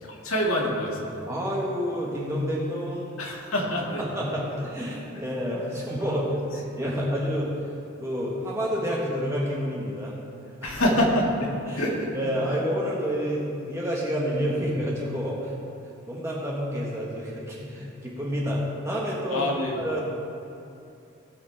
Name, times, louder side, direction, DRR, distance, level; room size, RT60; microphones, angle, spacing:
voice 1, 0.0-1.3 3.2-4.0 6.1-6.2 6.8-6.9 10.6-11.5 11.8-12.1 12.4-12.6 19.3-19.8, left 1 dB, 90° left, -2 dB, 2.0 m, -26 dB
voice 2, 1.3-3.2 4.0-7.5 8.0-10.1 10.6-10.8 11.7-11.8 12.1-15.5 16.1-19.5 19.8-20.0, equal, 15° right, -5 dB, 1.3 m, -29 dB
18.5 x 6.9 x 3.4 m, 2.7 s
head